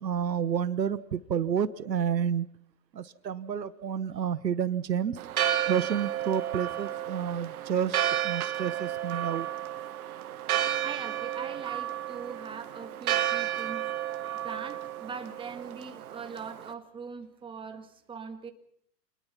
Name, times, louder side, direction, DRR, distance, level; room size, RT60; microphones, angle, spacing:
voice 1, 0.0-2.5 2.9-5.2 5.7-9.5, right 8 dB, 80° right, 16 dB, 1.4 m, -30 dB
Church bell, 5.2-16.7, right 11 dB, 60° right, 1.9 m, -32 dB
voice 2, 10.6-13.8 14.1-18.5, right 5 dB, 10° right, 6 dB, 1.9 m, -42 dB
27.0 x 20.5 x 5.9 m, 0.66 s
hypercardioid pair, 115°, 50 cm